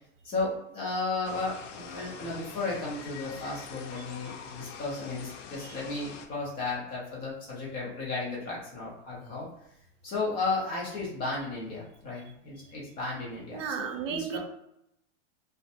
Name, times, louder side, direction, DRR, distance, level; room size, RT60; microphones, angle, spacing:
voice 1, 0.2-9.5 10.0-14.4, left 3 dB, 15° left, -5 dB, 0.3 m, -34 dB
sound 1, 1.2-6.3, left 6 dB, 75° left, 0.6 m, -44 dB
voice 2, 13.5-14.4, right 7 dB, 85° right, 5 dB, 0.6 m, -34 dB
2.5 x 2.1 x 2.7 m, 0.78 s
supercardioid pair, 155°, 37 cm